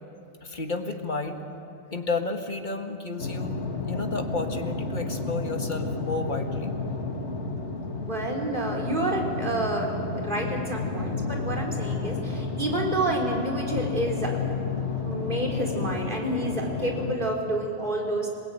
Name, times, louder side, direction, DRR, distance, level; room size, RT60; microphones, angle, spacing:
voice 1, 0.4-1.4 1.9-6.8, left 3 dB, 45° left, 4 dB, 1.9 m, -32 dB
sound 1, 3.2-17.1, left 3 dB, 85° left, 2.0 m, -31 dB
voice 2, 8.0-14.4 15.0-18.3, right 1 dB, 45° right, -1 dB, 4.0 m, -29 dB
27.5 x 18.5 x 9.1 m, 2.6 s
omnidirectional pair, 1.1 m